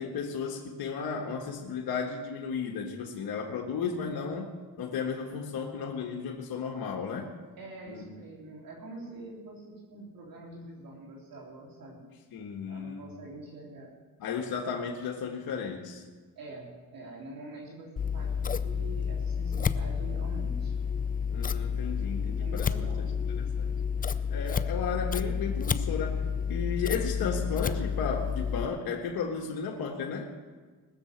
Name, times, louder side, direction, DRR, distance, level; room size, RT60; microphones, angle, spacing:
voice 1, 0.0-7.3 7.9-8.0 12.3-13.0 14.2-16.0 21.3-22.7 23.3-23.7 24.3-30.3, left 6 dB, 70° left, 0 dB, 1.6 m, -34 dB
voice 2, 7.6-12.1 12.7-13.9 16.3-20.7 22.4-23.2, right 2 dB, 65° right, -3 dB, 3.4 m, -45 dB
Scissors, 18.0-28.6, left 6 dB, 25° left, 0.5 m, -30 dB
20.0 x 6.8 x 7.3 m, 1.4 s
cardioid pair, 100°, 37 cm